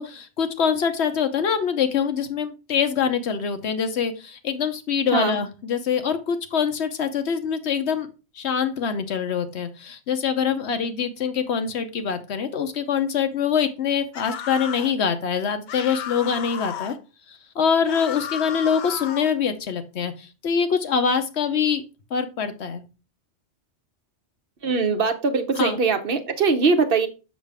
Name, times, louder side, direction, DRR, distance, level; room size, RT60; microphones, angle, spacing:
voice 1, 0.0-8.1 8.3-17.0 17.3-21.8 22.1-22.8 25.6-25.8, left 7 dB, 75° left, 1.1 m, -24 dB
sound 1, 14.1-14.9 15.7-17.0 17.9-19.4, left 8 dB, 60° left, 0.5 m, -34 dB
voice 2, 24.6-27.1, right 4 dB, 55° right, 1.0 m, -21 dB
6.5 x 6.2 x 3.4 m
omnidirectional pair, 1.2 m